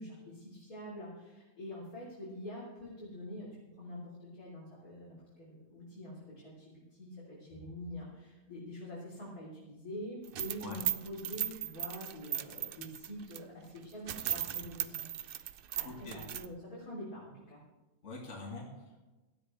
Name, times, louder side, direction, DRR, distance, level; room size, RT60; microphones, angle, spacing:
voice 1, 0.0-3.5 3.8-17.6, left 1 dB, 80° left, -7 dB, 4.2 m, -46 dB
sound 1, 10.2-13.4 13.8-13.9 14.1-16.5, right 10 dB, 60° right, 0.6 m, -37 dB
voice 2, 15.8-16.2 18.0-19.0, left 3 dB, 55° left, -2 dB, 2.4 m, -44 dB
18.0 x 13.0 x 3.4 m, 1.1 s
omnidirectional pair, 1.5 m